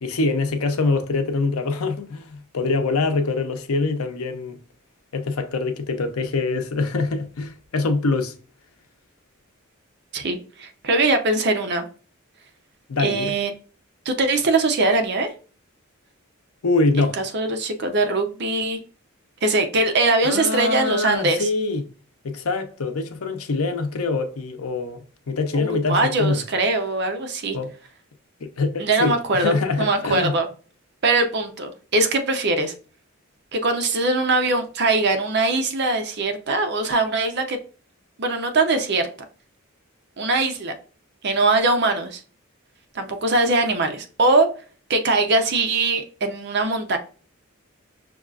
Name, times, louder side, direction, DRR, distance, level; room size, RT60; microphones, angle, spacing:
voice 1, 0.0-4.6 5.1-8.3 12.9-13.3 16.6-17.2 20.2-21.8 22.2-26.4 27.5-27.7 28.4-30.3, left 3 dB, 85° left, 0.6 m, -24 dB
voice 2, 10.1-11.8 13.0-13.5 14.1-15.3 17.0-18.8 19.4-21.5 25.5-27.6 28.8-30.5 31.0-32.7 33.5-37.6 38.2-39.1 40.2-40.7 41.2-42.2 42.9-44.5 44.9-47.0, right 2 dB, 50° right, 0.6 m, -21 dB
5.9 x 2.4 x 2.4 m
head